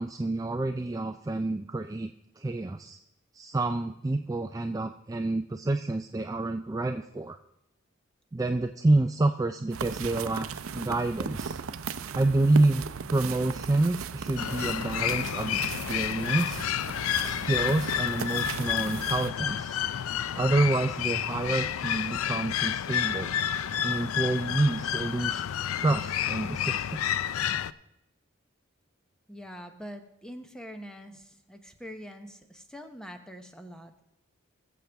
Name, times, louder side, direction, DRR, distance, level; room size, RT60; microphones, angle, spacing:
voice 1, 0.0-2.1 2.4-3.0 3.3-7.4 8.3-11.6 12.1-16.7 17.2-19.8 20.3-23.3 23.8-25.4 25.7-26.8, right 2 dB, 15° right, 6 dB, 0.3 m, -28 dB
sound 1, 9.7-19.3, right 6 dB, 90° right, 0.5 m, -37 dB
sound 2, 14.4-27.7, left 10 dB, 90° left, 0.4 m, -30 dB
voice 2, 29.3-33.9, equal, 5° left, 6 dB, 0.8 m, -44 dB
20.5 x 7.4 x 3.5 m, 0.85 s
head